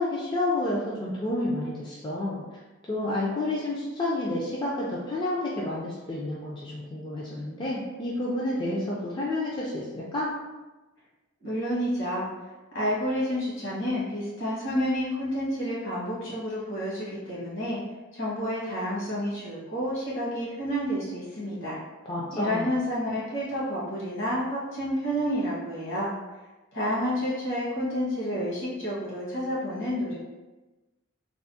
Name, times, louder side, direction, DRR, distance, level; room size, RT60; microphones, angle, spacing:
voice 1, 0.0-2.4 2.9-10.3 22.1-22.7, left 1 dB, 25° left, -6 dB, 0.3 m, -30 dB
voice 2, 11.4-12.3 12.7-17.8 18.1-21.8 22.3-26.1 26.7-30.2, equal, 65° left, -7 dB, 1.3 m, -29 dB
3.4 x 2.0 x 2.6 m, 1.1 s
head